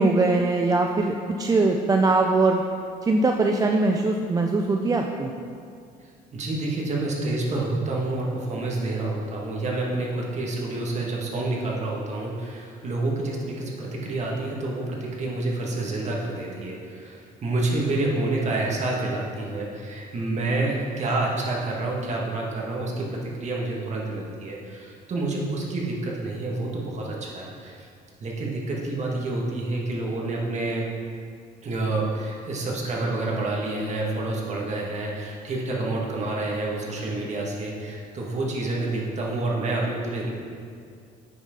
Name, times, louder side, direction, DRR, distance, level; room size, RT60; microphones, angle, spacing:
voice 1, 0.0-2.6 3.0-5.3, right 3 dB, 20° right, 2 dB, 0.5 m, -21 dB
voice 2, 6.3-27.9 28.2-30.9 31.6-40.3, right 2 dB, 45° right, -2 dB, 1.8 m, -28 dB
9.6 x 6.4 x 3.8 m, 2.3 s
cardioid pair, 110°, 17 cm